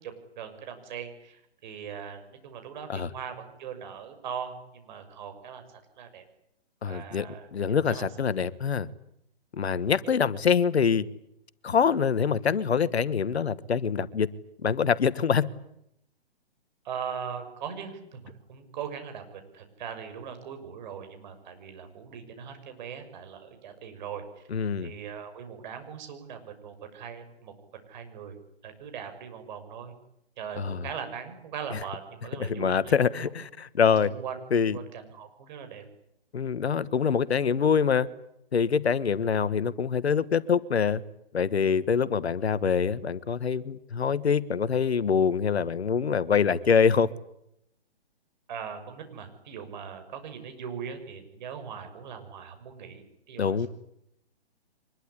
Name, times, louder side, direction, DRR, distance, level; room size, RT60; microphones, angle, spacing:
voice 1, 0.0-6.2 6.9-7.5 7.9-8.1 16.8-24.4 24.8-27.5 27.9-28.4 28.6-29.9 30.4-32.9 33.9-34.4 34.7-35.8 48.5-53.7, right 7 dB, 45° right, 7 dB, 6.5 m, -40 dB
voice 2, 6.8-7.3 7.5-8.9 9.6-11.1 11.6-14.3 14.6-15.5 24.5-24.9 30.6-30.8 32.4-34.1 34.5-34.8 36.3-38.1 38.5-41.0 41.3-47.1 53.4-53.7, left 6 dB, 75° left, 17 dB, 1.5 m, -25 dB
24.5 x 21.5 x 9.9 m, 0.79 s
hypercardioid pair, 140°, 32 cm